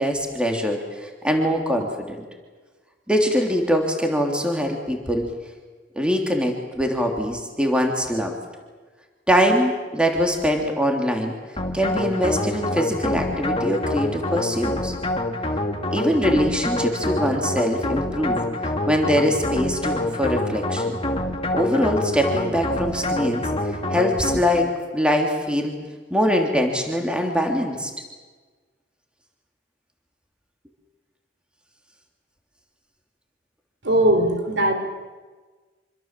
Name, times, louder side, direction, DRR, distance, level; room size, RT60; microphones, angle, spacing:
voice 1, 0.0-2.2 3.1-5.3 5.9-8.4 9.3-11.3 11.7-14.9 15.9-18.4 18.9-20.9 21.5-25.7 26.1-27.9, equal, 5° right, 2 dB, 3.2 m, -23 dB
sound 1, 11.6-24.8, left 1 dB, 30° left, 2.1 m, -26 dB
voice 2, 33.8-34.7, right 1 dB, 65° right, 5 dB, 4.3 m, -19 dB
26.5 x 24.5 x 7.6 m, 1.3 s
head